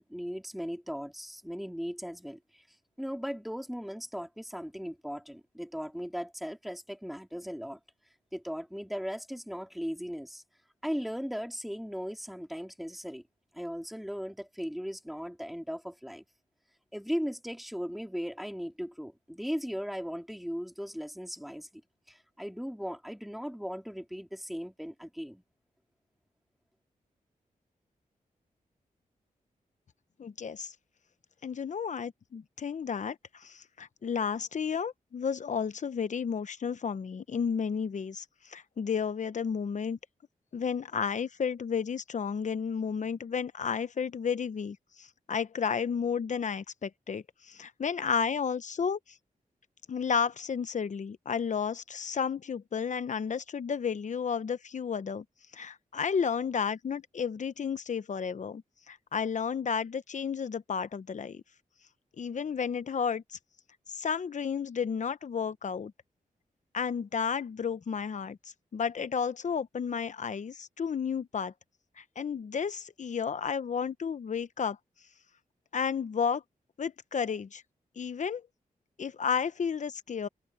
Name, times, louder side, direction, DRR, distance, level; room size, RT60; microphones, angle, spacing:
voice 1, 0.0-2.6 3.0-7.8 8.3-10.4 10.8-13.2 13.5-16.2 16.9-21.7 22.1-25.4, equal, ahead, 3.2 m, -37 dB
voice 2, 30.2-30.7 31.4-40.0 40.5-49.0 49.9-55.2 55.5-58.6 58.9-61.4 62.2-63.4 63.9-65.9 66.7-68.4 68.7-71.5 72.0-74.8 75.7-76.4 76.8-77.6 78.0-78.4 79.0-80.3, left 6 dB, 60° left, 0.9 m, -32 dB
open air
wide cardioid pair, 85°, 14 cm